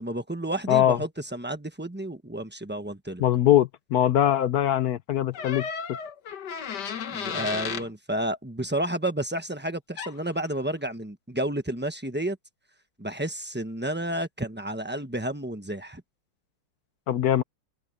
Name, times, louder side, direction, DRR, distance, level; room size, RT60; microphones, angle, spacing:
voice 1, 0.0-3.2 7.1-12.4 13.0-16.0, right 1 dB, 10° right, 0.6 m, -31 dB
voice 2, 0.7-1.0 3.2-5.7 17.1-17.4, left 11 dB, 70° left, 0.9 m, -22 dB
sound 1, 5.3-7.9 10.0-10.2, left 7 dB, 55° left, 1.8 m, -33 dB
open air
omnidirectional pair, 2.4 m